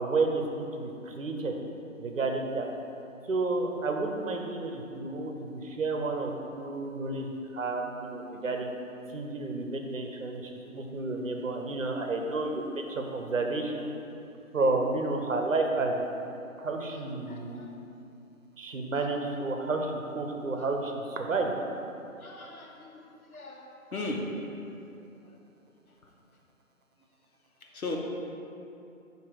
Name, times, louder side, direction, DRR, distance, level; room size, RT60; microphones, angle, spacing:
voice 1, 0.0-1.6 2.0-2.7 3.3-8.7 9.1-13.9 14.5-16.0 16.6-17.6 18.6-21.5, right 3 dB, 65° right, 2 dB, 0.8 m, -31 dB
voice 2, 17.3-17.7 18.9-19.1 20.5-20.7 22.2-24.8 25.2-25.4 25.9-26.1 27.7-28.0, left 2 dB, 80° left, -1 dB, 1.2 m, -39 dB
7.6 x 2.9 x 4.8 m, 2.7 s
hypercardioid pair, 170°, 42 cm